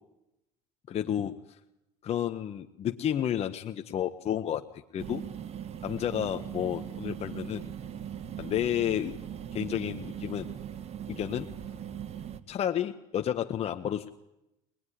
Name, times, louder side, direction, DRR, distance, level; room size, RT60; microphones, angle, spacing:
voice 1, 0.9-1.3 2.0-5.2 5.8-7.6 8.4-9.1 9.5-10.5 11.1-11.5 12.5-14.2, left 10 dB, 45° left, 7 dB, 1.0 m, -31 dB
sound 1, 5.0-12.4, right 9 dB, 45° right, 1.7 m, -40 dB
23.5 x 20.0 x 10.0 m, 0.91 s
supercardioid pair, 100°, 15 cm